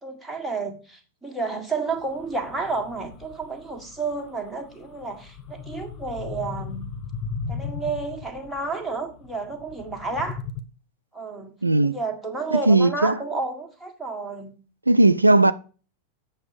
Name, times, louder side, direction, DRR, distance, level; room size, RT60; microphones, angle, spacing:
voice 1, 0.0-6.9 7.5-10.4 11.1-11.5 11.8-14.5, right 4 dB, ahead, 1.7 m, -31 dB
sound 1, 1.9-10.6, left 5 dB, 30° left, 0.9 m, -37 dB
voice 2, 11.6-12.0 12.5-13.2 14.9-15.5, right 2 dB, 85° right, 0.3 m, -17 dB
7.8 x 6.9 x 5.1 m
figure-of-eight pair, 90°, 0 cm